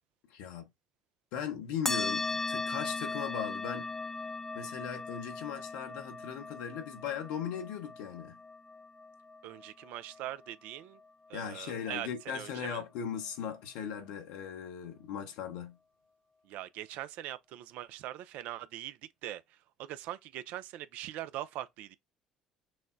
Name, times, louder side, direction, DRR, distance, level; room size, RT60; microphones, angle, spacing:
voice 1, 0.3-0.7 1.3-3.9 4.5-8.4 11.3-15.8, left 8 dB, 70° left, 0.9 m, -38 dB
sound 1, 1.9-10.8, left 3 dB, 10° left, 0.5 m, -38 dB
voice 2, 9.4-11.0 11.3-12.8 16.4-22.0, right 13 dB, 65° right, 0.4 m, -42 dB
6.1 x 2.1 x 2.5 m
hypercardioid pair, 60°, 3 cm